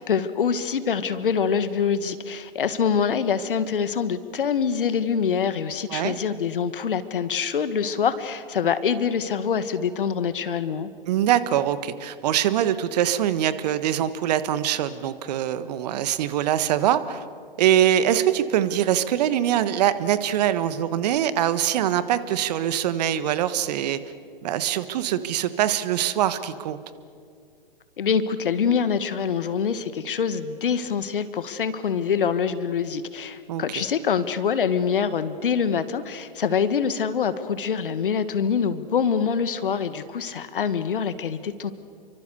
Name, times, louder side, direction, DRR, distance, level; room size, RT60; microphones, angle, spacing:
voice 1, 0.0-10.9 28.0-41.7, left 6 dB, 65° left, 12 dB, 1.7 m, -25 dB
voice 2, 11.1-17.2 17.6-24.0 24.4-26.8 33.5-33.6, right 11 dB, 45° right, 13 dB, 1.4 m, -23 dB
29.5 x 24.0 x 6.9 m, 2.2 s
figure-of-eight pair, 115°, 29 cm